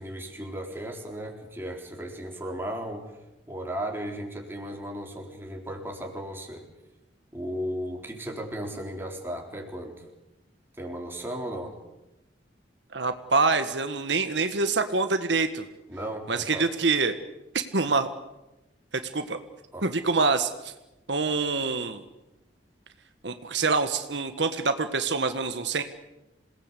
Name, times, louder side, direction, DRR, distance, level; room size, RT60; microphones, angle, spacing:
voice 1, 0.0-3.2 3.5-6.7 7.3-10.1 10.8-11.7 15.9-16.7 19.7-19.9, equal, 10° right, 1 dB, 4.0 m, -35 dB
voice 2, 12.9-15.6 16.3-17.1 17.5-18.1 19.1-19.4 19.8-20.7 21.1-22.0 23.2-25.8, right 4 dB, 75° right, 8 dB, 1.5 m, -25 dB
27.5 x 18.5 x 8.4 m, 0.96 s
head